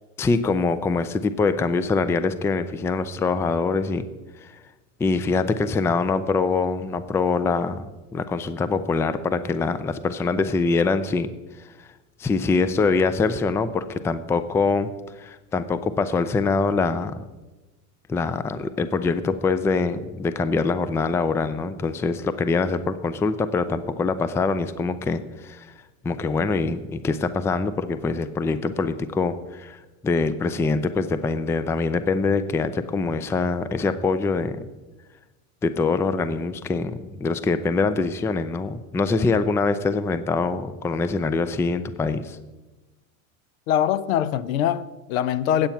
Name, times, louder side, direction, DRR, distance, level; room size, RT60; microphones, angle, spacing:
voice 1, 0.2-4.1 4.4-4.5 5.0-11.3 12.2-14.9 15.2-17.2 18.1-25.7 26.0-29.8 30.0-34.7 35.6-42.4, left 4 dB, 5° left, 0.3 m, -24 dB
voice 2, 43.7-45.7, left 10 dB, 80° left, 0.7 m, -23 dB
8.8 x 8.0 x 5.7 m
hypercardioid pair, 90°, 41 cm